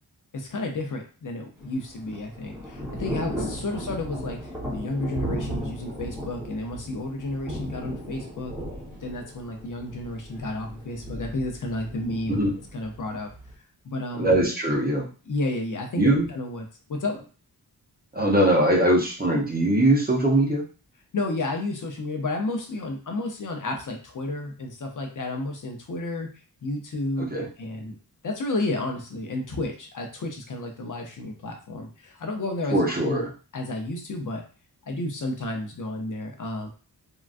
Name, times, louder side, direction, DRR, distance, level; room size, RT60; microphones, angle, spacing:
voice 1, 0.3-8.5 9.0-12.4 12.7-13.3 13.8-14.3 15.3-17.2 21.1-26.3 26.6-28.0 28.2-33.2 33.5-34.4 34.9-36.7, left 2 dB, 50° left, 3 dB, 0.6 m, -31 dB
Thunder / Rain, 1.6-13.5, equal, 5° right, 1.0 m, -36 dB
voice 2, 14.1-15.1 16.0-16.3 18.1-20.6 27.3-27.5 32.7-33.3, right 1 dB, 25° right, -2 dB, 0.7 m, -21 dB
3.7 x 2.3 x 2.4 m, 0.37 s
wide cardioid pair, 165°, 39 cm